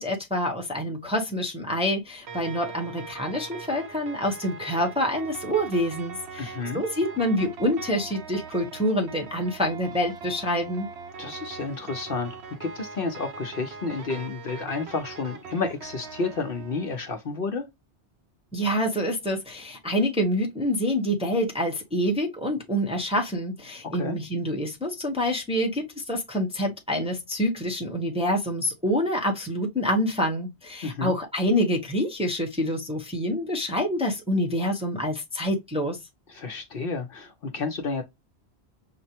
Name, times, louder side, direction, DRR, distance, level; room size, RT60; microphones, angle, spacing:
voice 1, 0.0-10.9 18.5-36.0, equal, 5° right, 0.8 m, -27 dB
sound 1, 2.3-17.0, right 5 dB, 70° right, 0.9 m, -41 dB
voice 2, 6.4-6.8 11.2-12.3 12.6-17.6 23.9-24.2 30.8-31.1 36.3-38.0, left 4 dB, 55° left, 0.9 m, -31 dB
5.9 x 2.2 x 2.8 m
omnidirectional pair, 1.2 m